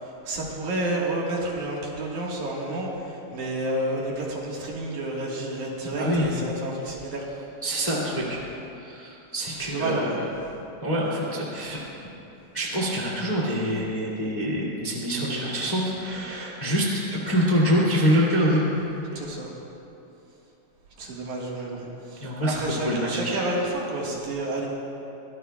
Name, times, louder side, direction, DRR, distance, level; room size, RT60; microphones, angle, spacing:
voice 1, 0.0-7.3 9.6-10.2 19.1-19.5 21.0-24.7, right 1 dB, 60° right, -3 dB, 2.8 m, -30 dB
voice 2, 5.8-6.4 7.6-8.4 8.8-10.1 10.8-11.8 12.5-18.6 19.1-19.2 22.2-23.4, equal, 15° left, -5 dB, 1.5 m, -25 dB
24.0 x 17.5 x 2.3 m, 2.9 s
omnidirectional pair, 4.1 m